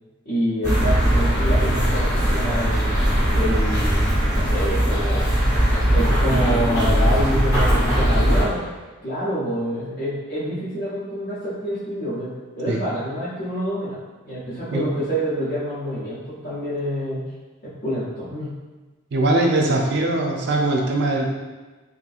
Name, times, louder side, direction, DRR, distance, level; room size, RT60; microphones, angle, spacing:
voice 1, 0.3-2.9 3.3-5.3 5.7-8.7 9.0-14.0 14.2-17.2 17.6-18.5, equal, 45° left, -13 dB, 0.7 m, -27 dB
sound 1, 0.6-8.4, equal, 15° left, 1.1 m, -19 dB
voice 2, 19.1-21.2, right 2 dB, 50° right, 0 dB, 0.4 m, -21 dB
2.9 x 2.5 x 2.4 m, 1.3 s
head